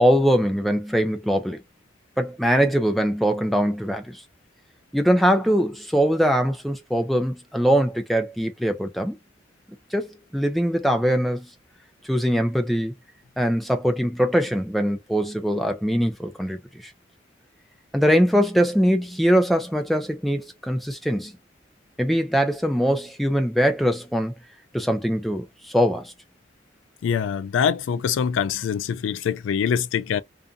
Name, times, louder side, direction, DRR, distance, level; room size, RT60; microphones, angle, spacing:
voice 1, 0.0-1.6 2.2-4.2 4.9-9.1 9.9-11.5 12.0-12.9 13.4-16.9 17.9-21.3 22.0-24.3 24.7-26.1, equal, ahead, 0.4 m, -22 dB
voice 2, 27.0-30.2, left 7 dB, 80° left, 0.3 m, -24 dB
2.6 x 2.5 x 2.2 m
head